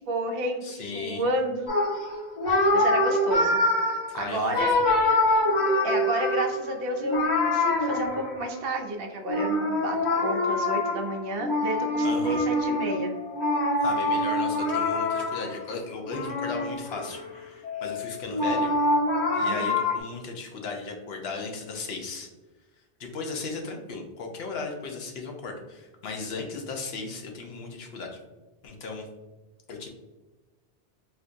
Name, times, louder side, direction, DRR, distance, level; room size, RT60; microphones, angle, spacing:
voice 1, 0.0-1.7 2.7-3.6 4.1-4.7 5.8-13.1 19.5-19.7, right 1 dB, 65° right, 3 dB, 0.7 m, -31 dB
voice 2, 0.6-1.2 4.1-4.5 12.0-12.4 13.8-18.7 19.3-22.3 23.0-28.2 28.6-29.1 29.7-29.9, left 4 dB, 70° left, 2 dB, 0.8 m, -36 dB
sound 1, 1.7-8.6 9.3-15.6 16.0-17.2 17.6-20.0, left 1 dB, 40° left, 1.2 m, -25 dB
4.3 x 2.5 x 2.5 m, 1.2 s
omnidirectional pair, 1.2 m